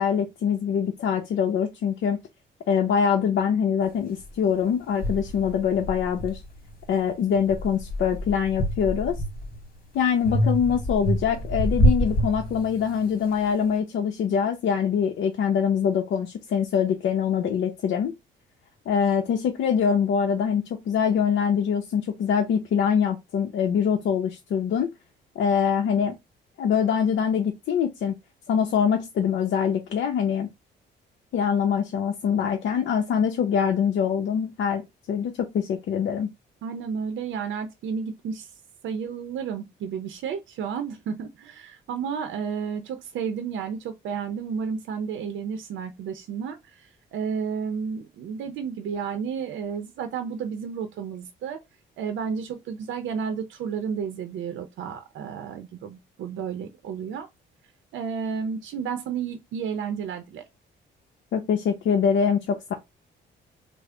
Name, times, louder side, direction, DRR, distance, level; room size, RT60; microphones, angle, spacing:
voice 1, 0.0-2.2 2.7-6.4 6.9-9.2 9.9-18.1 18.9-24.9 25.4-26.2 26.6-28.1 28.5-30.5 31.3-34.8 35.1-36.3 61.3-62.7, left 7 dB, 70° left, 0.6 m, -24 dB
sound 1, 4.2-4.3 5.0-6.9 7.3-9.7 10.3-13.0, equal, 50° left, 1.4 m, -26 dB
voice 2, 36.6-38.5 38.8-51.6 52.0-57.3 57.9-60.4, right 6 dB, 75° right, 0.6 m, -32 dB
3.4 x 2.0 x 3.7 m
cardioid pair, 90°, 20 cm